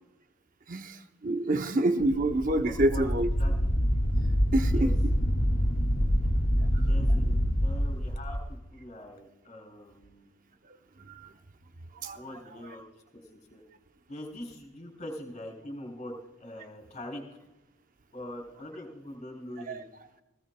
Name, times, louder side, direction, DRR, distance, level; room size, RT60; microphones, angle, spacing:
voice 1, 1.2-3.3 4.5-4.9 12.0-12.2 19.7-19.8, right 1 dB, 40° right, 8 dB, 0.7 m, -26 dB
Wind, 2.0-8.4, equal, 65° left, 2.4 m, -26 dB
voice 2, 2.6-3.1 3.4-3.8 4.7-4.9 6.9-8.4 8.7-10.3 12.1-12.9 13.1-13.6 14.1-16.1 16.4-17.2 18.1-19.8, left 1 dB, 35° left, 1 dB, 3.5 m, -43 dB
19.0 x 16.5 x 2.2 m, 0.96 s
head